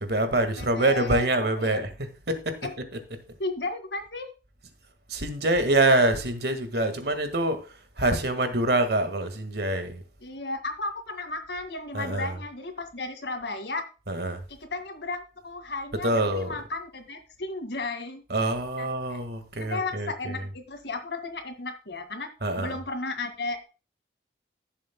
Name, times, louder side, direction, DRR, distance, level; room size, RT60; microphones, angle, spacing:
voice 1, 0.0-3.0 5.1-7.7 8.0-10.0 11.9-12.4 14.1-14.4 15.9-16.6 18.3-20.5 22.4-22.8, right 2 dB, 60° right, 1.7 m, -26 dB
voice 2, 0.6-1.3 1.5-1.8 2.6-2.7 3.4-4.3 10.2-13.8 14.5-18.2 18.8-19.2 19.6-22.3 22.6-23.6, left 3 dB, 70° left, 2.0 m, -34 dB
15.5 x 7.5 x 2.2 m
head